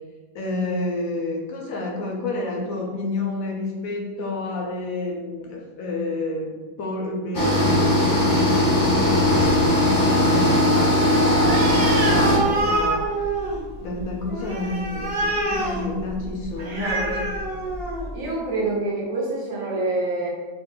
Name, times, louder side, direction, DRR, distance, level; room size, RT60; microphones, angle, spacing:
voice 1, 0.3-13.1 13.8-17.3, left 2 dB, 75° left, 0 dB, 1.1 m, -29 dB
sound 1, 7.3-12.4, left 1 dB, 30° left, 0.4 m, -19 dB
Animal, 11.4-18.2, right 1 dB, 45° right, 1.2 m, -27 dB
voice 2, 16.8-17.2 18.1-20.3, right 2 dB, 65° right, -5 dB, 1.4 m, -26 dB
2.9 x 2.8 x 3.8 m, 1.3 s
omnidirectional pair, 1.5 m